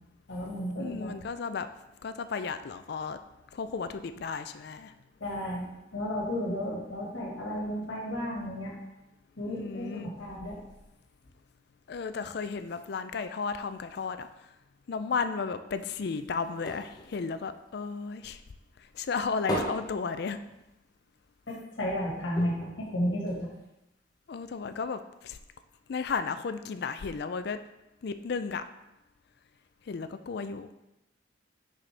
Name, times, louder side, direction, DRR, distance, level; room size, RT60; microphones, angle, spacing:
voice 1, 0.3-1.1 5.2-8.7 9.4-10.6 21.5-23.5, equal, 75° left, -4 dB, 1.7 m, -33 dB
voice 2, 0.8-1.7 2.0-3.2 3.5-4.9 9.5-10.1 11.9-14.3 14.9-18.4 18.9-20.4 24.3-25.4 25.9-27.6 28.0-28.6 29.9-30.7, left 5 dB, 55° left, 10 dB, 0.4 m, -34 dB
sound 1, 15.7-18.4 18.8-21.0 21.3-21.4 21.7-21.9 22.3-23.8 24.5-24.6, equal, 20° left, 0.9 m, -38 dB
6.1 x 5.8 x 3.4 m, 0.93 s
head